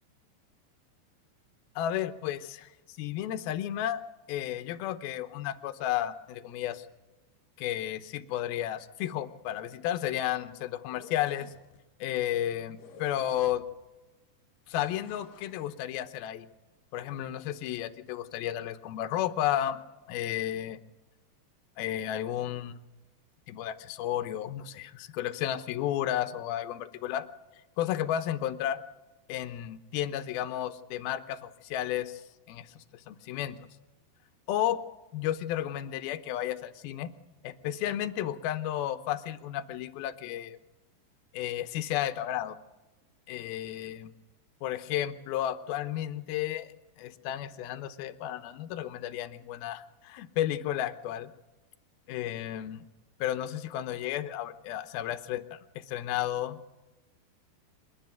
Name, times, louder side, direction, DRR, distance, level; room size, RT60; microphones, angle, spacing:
voice 1, 1.8-4.0 4.3-6.9 7.6-11.5 12.0-13.6 14.7-16.5 16.9-19.8 20.1-20.8 21.8-22.7 23.5-27.3 27.8-28.8 29.3-33.6 34.5-34.8 35.1-37.1 37.4-40.6 41.3-42.6 43.3-44.1 44.6-51.3 52.1-52.8 53.2-56.6, left 12 dB, 70° left, 10 dB, 2.5 m, -33 dB
sound 1, 10.8-11.8 12.8-13.8 14.7-15.7, left 5 dB, 55° left, 3.3 m, -53 dB
26.5 x 11.0 x 9.2 m, 1.1 s
omnidirectional pair, 5.1 m